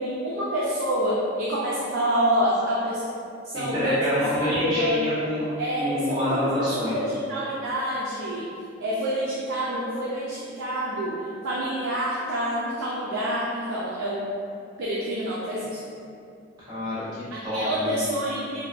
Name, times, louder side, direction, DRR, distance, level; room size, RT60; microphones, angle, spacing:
voice 1, 0.0-3.0 3.4-5.0 5.6-8.5 8.8-11.2 11.4-14.2 14.8-15.8 17.3-18.6, equal, 75° right, -7 dB, 0.4 m, -27 dB
voice 2, 3.5-5.4 5.8-7.0 16.7-18.0, left 1 dB, 20° right, -13 dB, 1.0 m, -27 dB
2.7 x 2.1 x 2.3 m, 2.4 s
head